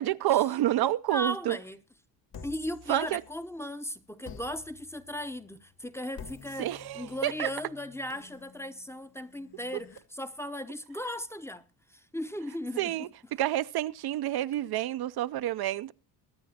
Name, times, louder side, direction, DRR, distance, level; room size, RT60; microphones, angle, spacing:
voice 1, 0.0-1.6 2.9-3.2 6.6-7.5 12.8-13.1 13.4-15.9, right 14 dB, 60° right, 0.6 m, -28 dB
voice 2, 0.8-1.8 2.4-13.0, equal, 5° left, 0.7 m, -37 dB
sound 1, 2.3-3.7 4.2-10.0, left 6 dB, 55° left, 1.9 m, -51 dB
22.5 x 9.5 x 2.8 m
cardioid pair, 125°, 42 cm